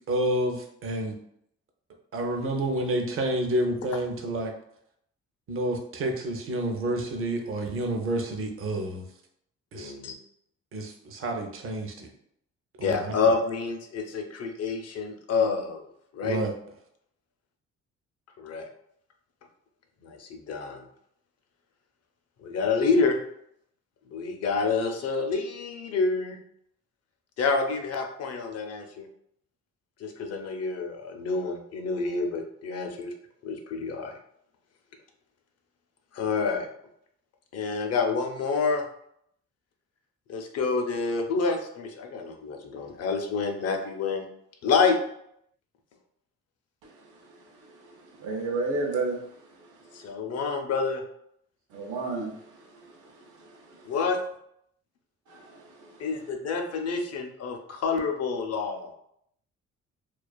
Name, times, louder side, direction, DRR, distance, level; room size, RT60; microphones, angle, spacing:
voice 1, 0.1-1.2 2.1-4.5 5.5-9.1 9.7-9.9 10.7-12.1 12.8-13.2 16.2-16.5, right 1 dB, 45° right, 3 dB, 0.6 m, -29 dB
voice 2, 9.7-10.1 12.8-15.8 16.1-16.4 18.4-18.7 20.0-20.9 22.4-23.2 24.1-26.4 27.4-29.1 30.0-33.1 33.4-34.1 36.1-36.7 37.5-38.8 40.3-44.3 44.6-45.0 49.9-51.0 53.9-54.2 56.0-58.9, left 4 dB, 55° left, 4 dB, 0.5 m, -28 dB
voice 3, 48.2-49.2 51.7-52.4 52.8-52.9 55.3-55.6, right 3 dB, 90° right, 0 dB, 0.6 m, -30 dB
2.4 x 2.3 x 2.2 m, 0.71 s
cardioid pair, 90°, 30 cm